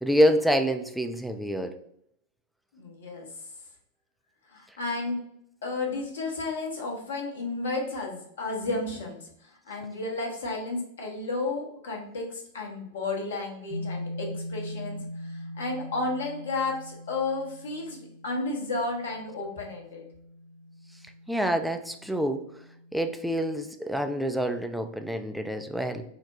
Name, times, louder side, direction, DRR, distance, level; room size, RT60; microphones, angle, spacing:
voice 1, 0.0-1.7 21.3-22.4 22.9-26.0, equal, ahead, 6 dB, 0.3 m, -26 dB
voice 2, 2.7-3.4 4.5-5.2 5.6-20.0, left 3 dB, 65° left, 0 dB, 0.8 m, -32 dB
sound 1, 13.7-23.2, left 1 dB, 30° left, 0.7 m, -41 dB
4.1 x 2.1 x 2.9 m, 0.71 s
figure-of-eight pair, 90°, 0 cm